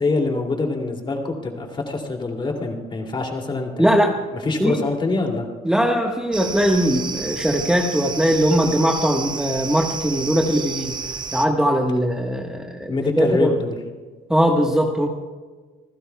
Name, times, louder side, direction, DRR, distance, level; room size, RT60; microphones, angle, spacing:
voice 1, 0.0-3.9 4.4-5.4 12.9-13.8, left 3 dB, 30° left, 2 dB, 2.6 m, -24 dB
voice 2, 3.8-4.2 4.6-4.8 5.6-10.9 11.3-13.5 14.3-15.1, equal, 5° right, 1 dB, 1.3 m, -20 dB
sound 1, 6.3-11.5, right 5 dB, 25° right, 0.9 m, -31 dB
26.0 x 15.0 x 2.3 m, 1.4 s
cardioid pair, 110°, 17 cm